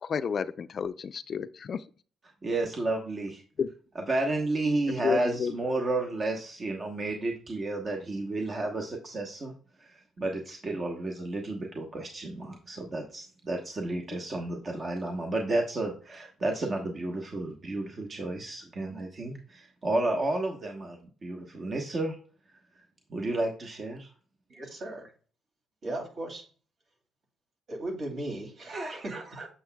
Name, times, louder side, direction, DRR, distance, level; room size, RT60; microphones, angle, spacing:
voice 1, 0.0-1.8 3.6-3.7 5.0-5.5, left 6 dB, 50° left, 13 dB, 0.3 m, -30 dB
voice 2, 2.4-3.4 3.9-9.5 9.8-22.2 22.5-22.6 23.1-24.1 28.7-29.2, right 2 dB, 40° right, 1 dB, 1.1 m, -32 dB
voice 3, 24.5-25.1 25.8-26.4 27.7-29.5, right 1 dB, 55° right, 2 dB, 2.7 m, -37 dB
7.9 x 6.9 x 2.2 m, 0.40 s
cardioid pair, 90°, 0 cm